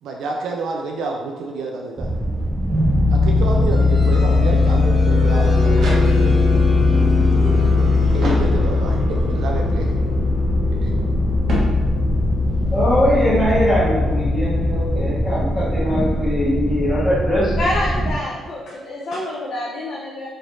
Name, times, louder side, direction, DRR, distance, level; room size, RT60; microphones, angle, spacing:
voice 1, 0.0-2.1 3.1-6.4 7.7-9.9 10.8-10.9, right 3 dB, 80° right, 0 dB, 0.3 m, -29 dB
sound 1, 2.0-18.1, left 2 dB, 20° right, 0.8 m, -19 dB
sound 2, 3.7-16.2, left 2 dB, 40° left, 1.2 m, -30 dB
sound 3, 5.7-6.6 8.2-9.1 11.4-12.4, equal, 60° right, 1.0 m, -28 dB
voice 2, 12.7-17.5, equal, 20° left, -13 dB, 1.2 m, -21 dB
voice 3, 17.6-20.3, left 1 dB, 65° left, -3 dB, 0.5 m, -27 dB
3.1 x 3.0 x 2.6 m, 1.3 s
cardioid pair, 90°, 0 cm